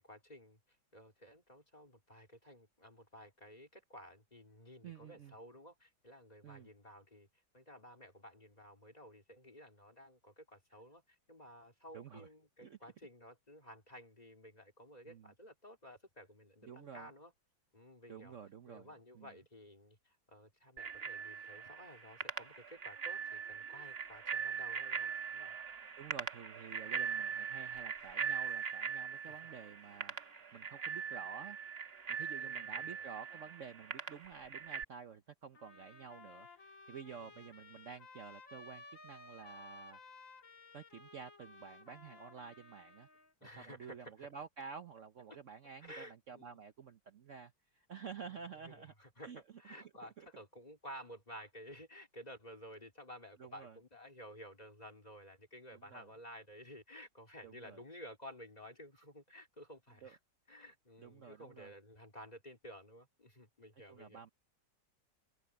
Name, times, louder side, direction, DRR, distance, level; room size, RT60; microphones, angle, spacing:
voice 1, 0.0-7.3 7.5-17.3 17.7-18.3 18.7-25.6 29.3-29.4 30.3-30.6 32.3-33.1 37.1-37.3 43.4-44.3 45.3-45.4 45.8-46.6 48.2-60.2 60.5-64.2, equal, 20° left, 2.9 m, -54 dB
voice 2, 4.8-5.3 6.4-6.7 11.9-12.3 12.6-12.8 15.1-15.3 16.6-17.1 18.1-18.9 19.1-19.3 26.0-30.1 30.5-31.6 32.1-40.0 40.7-43.1 43.4-48.9 49.2-49.4 49.8-49.9 50.2-50.3 53.4-53.8 55.7-56.1 57.4-57.8 60.0-60.1 61.0-61.7 63.9-64.3, right 6 dB, 50° right, 1.1 m, -51 dB
Bicycle bell, 20.8-34.8, right 6 dB, 35° right, 1.5 m, -41 dB
sound 1, 35.5-43.3, left 3 dB, 50° left, 2.2 m, -56 dB
omnidirectional pair, 1.9 m